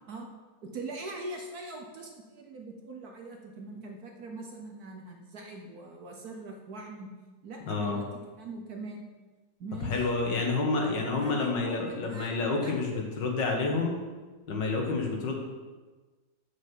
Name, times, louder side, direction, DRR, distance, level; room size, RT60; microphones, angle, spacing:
voice 1, 0.6-7.1 7.4-9.0 9.6-10.1 11.0-12.3 12.6-13.0, right 2 dB, 60° right, 2 dB, 1.4 m, -42 dB
voice 2, 7.7-8.0 9.8-14.0 14.5-15.4, left 3 dB, 80° left, 1 dB, 2.2 m, -29 dB
6.7 x 6.6 x 7.4 m, 1.3 s
omnidirectional pair, 1.9 m